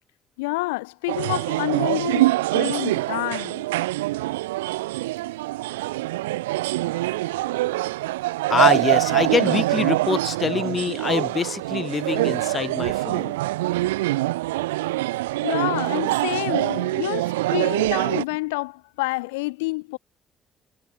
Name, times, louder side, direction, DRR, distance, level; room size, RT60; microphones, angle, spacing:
voice 1, 0.4-3.6 15.4-20.0, left 24 dB, 75° left, 3.7 m, -28 dB
sound 1, 1.1-18.2, right 18 dB, 80° right, 0.3 m, -24 dB
voice 2, 8.5-13.3, left 5 dB, 40° left, 4.2 m, -25 dB
figure-of-eight pair, 45°, 0 cm